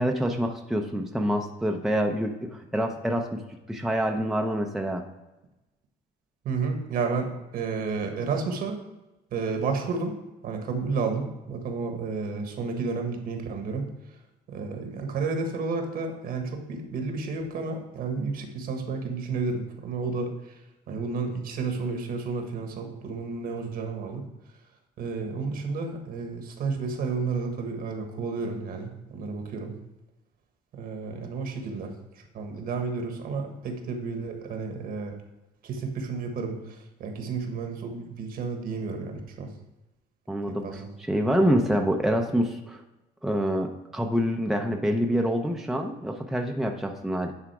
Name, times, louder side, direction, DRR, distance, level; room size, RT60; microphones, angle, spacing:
voice 1, 0.0-3.4 3.7-5.0 40.3-40.7 41.1-42.8 43.2-47.3, equal, ahead, 3 dB, 0.6 m, -26 dB
voice 2, 6.4-8.8 9.3-10.1 10.4-13.9 14.5-20.6 20.9-24.2 25.0-29.7 30.7-35.2 35.6-39.5 40.6-40.9, right 4 dB, 60° right, 4 dB, 1.4 m, -31 dB
9.8 x 3.6 x 4.7 m, 1.0 s
cardioid pair, 110°, 17 cm